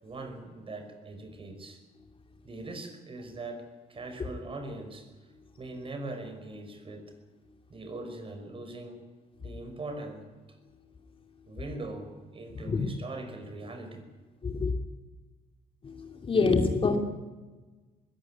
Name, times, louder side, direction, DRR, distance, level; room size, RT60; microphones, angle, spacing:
voice 1, 0.0-1.8 2.4-5.1 5.6-7.1 7.7-9.0 9.4-10.3 11.5-14.0, right 2 dB, 30° right, 6 dB, 5.5 m, -41 dB
voice 2, 15.8-17.0, left 4 dB, 30° left, 5 dB, 2.8 m, -26 dB
21.0 x 17.0 x 9.8 m, 1.3 s
cardioid pair, 110°, 17 cm